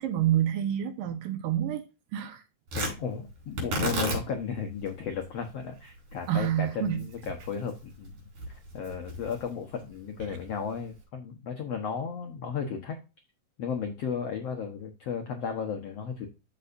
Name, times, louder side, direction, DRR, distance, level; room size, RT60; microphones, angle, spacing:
voice 1, 0.0-1.8 2.1-2.4 6.3-7.1, right 11 dB, 75° right, 2.4 m, -28 dB
voice 2, 2.7-8.2 8.7-13.0 13.6-16.3, left 6 dB, 75° left, 1.4 m, -34 dB
Tearing, 2.7-11.0, right 1 dB, 50° right, 5.7 m, -36 dB
13.5 x 5.5 x 2.6 m
omnidirectional pair, 4.4 m